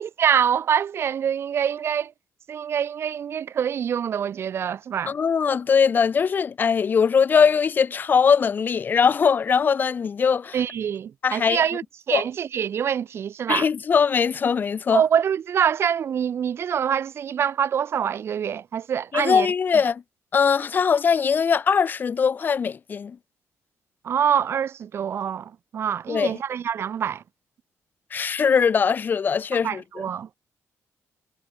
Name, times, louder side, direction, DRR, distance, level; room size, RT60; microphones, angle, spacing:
voice 1, 0.0-2.1 2.5-5.1 10.5-13.7 14.9-19.5 24.0-27.2 29.6-30.3, right 8 dB, 50° right, 2.6 m, -25 dB
voice 2, 5.1-10.6 11.2-11.6 12.1-12.2 13.5-15.0 19.1-20.0 20.3-23.2 26.1-26.4 28.1-29.8, left 6 dB, 35° left, 1.2 m, -21 dB
cardioid pair, 155°, 5 cm